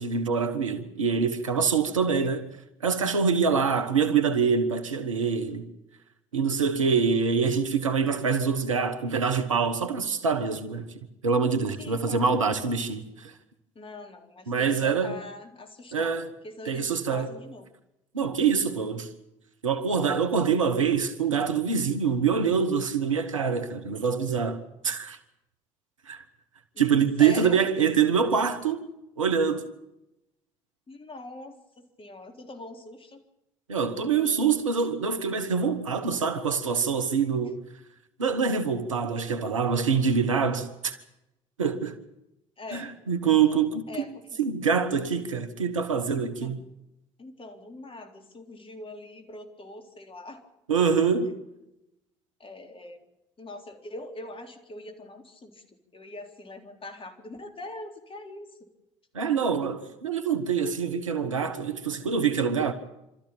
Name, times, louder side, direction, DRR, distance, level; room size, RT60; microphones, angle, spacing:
voice 1, 0.0-2.5 2.8-5.7 6.3-10.9 11.2-13.3 14.5-15.2 15.9-16.3 16.7-17.3 18.1-19.1 19.6-25.2 26.1-26.2 26.8-28.8 29.2-29.7 33.7-37.6 38.2-40.9 41.6-42.0 42.7-43.9 44.4-46.6 50.7-51.3 59.1-62.7, right 6 dB, 90° right, 1.3 m, -25 dB
voice 2, 11.8-12.4 13.8-16.2 16.4-17.7 26.7-26.8 27.2-27.7 28.0-28.1 30.9-33.2 42.6-42.9 43.9-44.4 46.4-46.5 47.2-50.4 50.8-50.9 52.4-53.0 53.4-55.6 55.9-58.7, left 2 dB, 35° left, 3.8 m, -42 dB
26.5 x 13.5 x 8.8 m
figure-of-eight pair, 50°, 16 cm